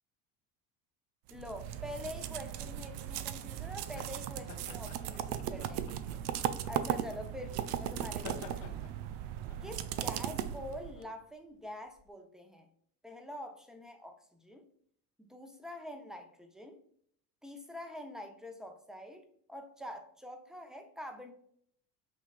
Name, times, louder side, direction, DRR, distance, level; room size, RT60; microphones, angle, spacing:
voice 1, 1.3-6.2 6.7-8.8 9.6-12.7 13.0-14.6 15.2-16.8 17.4-21.3, left 1 dB, ahead, 5 dB, 0.8 m, -46 dB
sound 1, 1.3-11.0, right 10 dB, 60° right, 0.6 m, -37 dB
sound 2, 3.9-12.1, left 6 dB, 75° left, 0.9 m, -53 dB
5.7 x 3.1 x 2.4 m, 0.65 s
hypercardioid pair, 70°, 47 cm